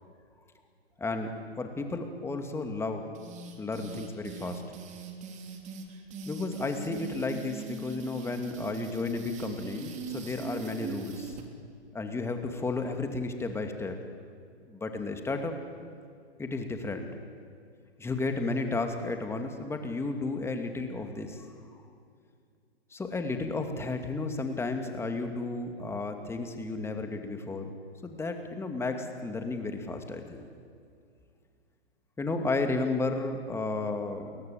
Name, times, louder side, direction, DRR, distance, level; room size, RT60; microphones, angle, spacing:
voice 1, 1.0-3.1 3.6-4.6 6.3-11.4 11.9-14.0 14.6-15.5 16.4-17.1 18.0-21.5 22.9-27.8 28.0-30.5 32.2-34.4, left 3 dB, 10° left, 5 dB, 2.6 m, -33 dB
sound 1, 3.1-11.5, right 5 dB, 20° right, 3.0 m, -41 dB
29.5 x 22.5 x 8.7 m, 2.3 s
hypercardioid pair, 125°, 33 cm